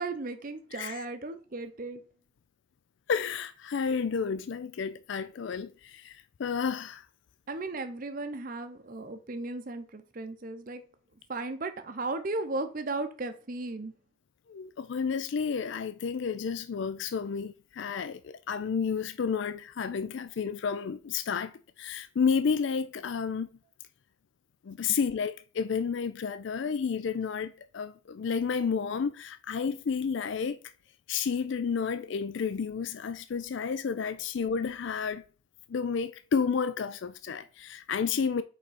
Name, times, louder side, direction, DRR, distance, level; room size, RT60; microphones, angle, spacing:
voice 1, 0.0-2.0 7.5-10.8 11.3-13.9, right 2 dB, 40° right, 0.6 m, -35 dB
voice 2, 0.7-1.0 3.1-7.1 14.5-23.5 24.6-30.6 31.1-35.2 35.7-38.4, left 6 dB, 60° left, 0.4 m, -31 dB
5.4 x 4.9 x 4.1 m
head